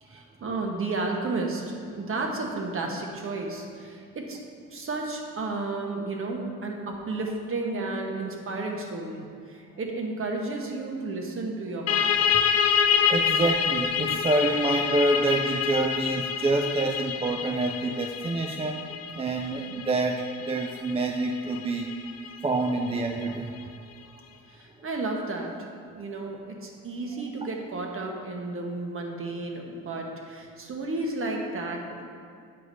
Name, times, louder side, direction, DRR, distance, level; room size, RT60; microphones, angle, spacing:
voice 1, 0.0-4.4 4.7-12.1 24.5-25.7 25.9-32.0, right 3 dB, 45° right, 1 dB, 1.1 m, -32 dB
sound 1, 11.9-23.2, left 7 dB, 55° left, 0.5 m, -27 dB
voice 2, 13.1-18.8 19.1-21.9 22.4-23.7, right 2 dB, 20° right, 3 dB, 0.4 m, -27 dB
7.9 x 4.9 x 3.9 m, 2.3 s
cardioid pair, 90°, 30 cm